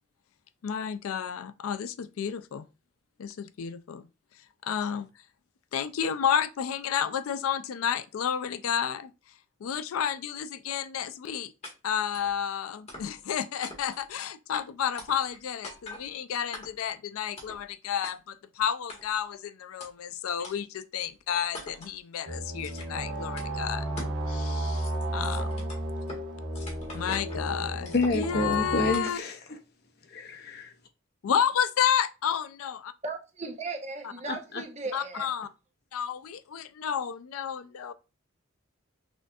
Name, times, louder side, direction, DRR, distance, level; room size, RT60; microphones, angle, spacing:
voice 1, 0.6-2.7 3.2-4.1 4.6-5.1 5.7-9.1 9.6-11.5 11.8-23.9 24.2-25.7 26.9-29.2 31.2-32.9 34.0-34.1 34.9-35.5 35.9-37.9, left 8 dB, 80° left, 0.3 m, -31 dB
sound 1, 11.6-11.7 12.1-12.3 12.9-13.3 13.6-14.1 14.5-14.6 15.0-15.4 15.6-16.0 16.5-16.9 17.4-17.6 18.0-18.1 18.9-19.3 19.8-19.9 20.4-20.6 21.0-21.1 21.5-22.0 22.6-23.0 23.4-23.5 24.0-24.2 24.5-26.2 26.5-27.4 27.8-28.5 28.9-29.2, left 2 dB, 30° left, 1.5 m, -43 dB
sound 2, 22.3-28.9, right 1 dB, 55° right, 1.0 m, -33 dB
voice 2, 27.9-29.4 30.1-30.7 34.3-34.4, left 3 dB, 50° left, 0.7 m, -28 dB
voice 3, 33.0-35.3, right 3 dB, 30° right, 0.8 m, -37 dB
6.1 x 2.7 x 2.3 m
head